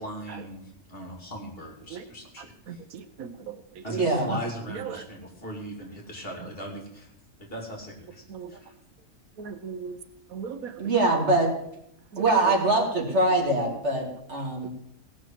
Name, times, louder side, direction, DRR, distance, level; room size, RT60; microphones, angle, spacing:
voice 1, 0.0-2.8 3.8-7.1 7.4-8.7, equal, 40° left, 1 dB, 2.9 m, -39 dB
voice 2, 2.7-3.8 4.8-5.0 8.3-8.5 9.4-10.0 10.3-10.9 12.1-12.2 14.6-14.7, right 6 dB, 80° right, 10 dB, 1.3 m, -38 dB
voice 3, 4.0-4.3 10.8-11.5 12.2-14.7, right 2 dB, 50° right, 0 dB, 2.8 m, -23 dB
17.0 x 6.2 x 7.4 m, 0.77 s
omnidirectional pair, 1.5 m